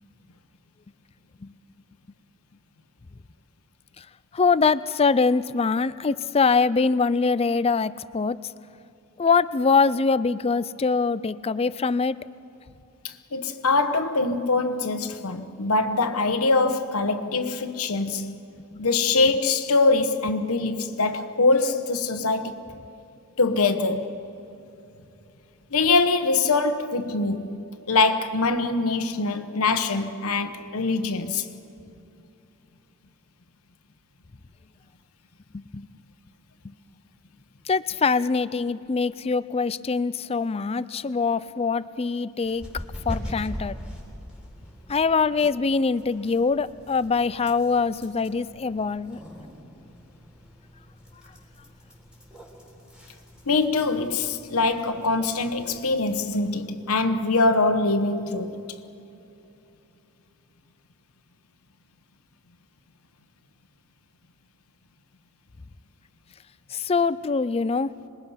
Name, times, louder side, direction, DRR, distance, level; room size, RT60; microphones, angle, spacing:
voice 1, 4.3-8.4 9.2-12.2 18.7-18.8 35.5-35.9 36.6-36.7 37.7-43.8 44.9-49.2 66.7-67.9, left 4 dB, 25° left, 0.4 m, -23 dB
voice 2, 13.3-18.3 18.8-22.6 23.4-24.2 25.7-27.6 27.9-31.4 53.5-58.6, left 3 dB, 70° left, 1.2 m, -23 dB
sound 1, 42.4-56.6, equal, 5° right, 3.8 m, -42 dB
26.5 x 21.0 x 5.7 m
head